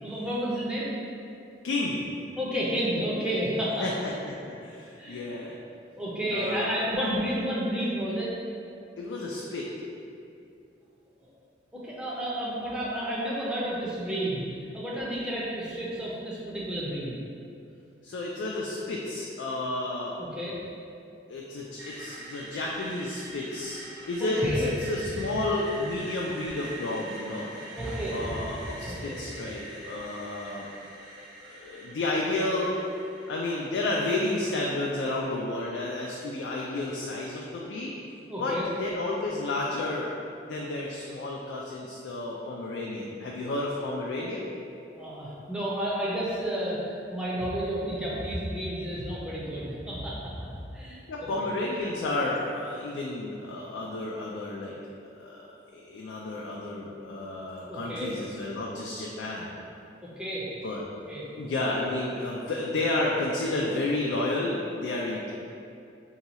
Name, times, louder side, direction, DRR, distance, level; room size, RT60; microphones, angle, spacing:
voice 1, 0.0-0.9 2.4-3.9 5.0-5.2 6.0-8.3 11.2-11.3 11.7-17.2 20.2-20.6 24.2-24.7 27.8-28.3 28.8-29.2 38.3-38.7 44.9-50.3 50.7-51.5 57.7-58.1 60.0-60.5 61.1-61.3, equal, 5° right, -7 dB, 0.5 m, -31 dB
voice 2, 1.6-2.1 3.8-5.6 6.3-6.8 9.0-9.7 18.0-20.2 21.3-27.5 28.1-30.7 31.2-32.8 33.3-37.9 38.4-40.1 40.5-44.5 51.1-54.8 55.1-55.5 55.7-59.6 60.6-60.9 61.4-65.3, left 2 dB, 75° left, -3 dB, 0.3 m, -31 dB
Screech, 21.8-35.7, right 1 dB, 90° right, 1.0 m, -44 dB
2.8 x 2.3 x 4.1 m, 2.6 s
head